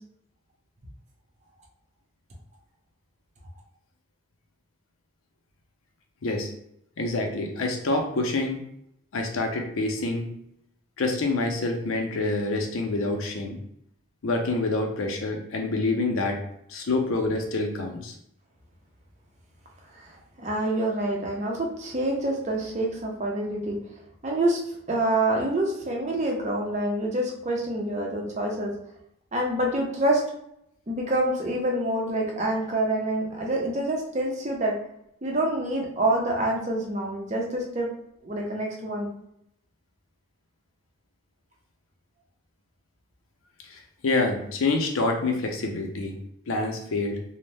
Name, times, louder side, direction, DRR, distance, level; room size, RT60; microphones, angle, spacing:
voice 1, 7.0-8.6 9.1-10.3 11.0-13.6 14.2-16.4 16.7-18.1 43.7-46.2 46.5-47.2, left 2 dB, 85° left, 3 dB, 0.6 m, -27 dB
voice 2, 20.4-23.8 24.2-24.6 24.9-28.8 29.3-30.2 30.9-34.8 35.2-37.9 38.2-39.1, right 1 dB, 35° right, -1 dB, 0.6 m, -26 dB
2.6 x 2.1 x 3.2 m, 0.75 s
head